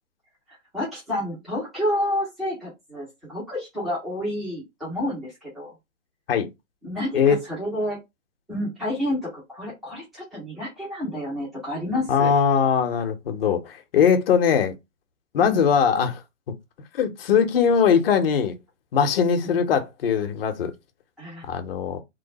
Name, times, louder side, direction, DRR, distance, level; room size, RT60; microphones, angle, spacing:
voice 1, 0.7-5.7 6.8-8.0 8.5-12.3 15.4-15.6 21.2-21.4, left 1 dB, ahead, 0.4 m, -29 dB
voice 2, 12.1-14.7 15.3-16.2 16.9-18.6 18.9-20.7 21.4-22.0, left 7 dB, 50° left, 0.9 m, -21 dB
3.2 x 2.2 x 4.0 m
hypercardioid pair, 150°, 37 cm